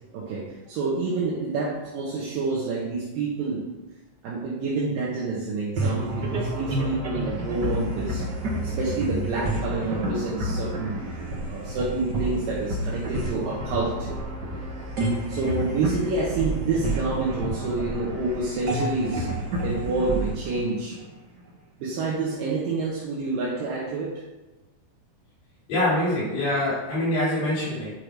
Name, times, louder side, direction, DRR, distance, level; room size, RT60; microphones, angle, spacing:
voice 1, 0.1-3.8 4.2-8.2 8.6-11.0 11.3-14.1 14.5-14.6 15.3-19.3 19.6-21.0 21.8-24.2, right 3 dB, 75° right, -5 dB, 2.9 m, -28 dB
sound 1, 5.8-21.4, right 1 dB, 45° right, 1.4 m, -30 dB
voice 2, 25.7-27.9, left 1 dB, 75° left, -10 dB, 5.1 m, -24 dB
10.5 x 4.8 x 5.1 m, 1.1 s
omnidirectional pair, 4.1 m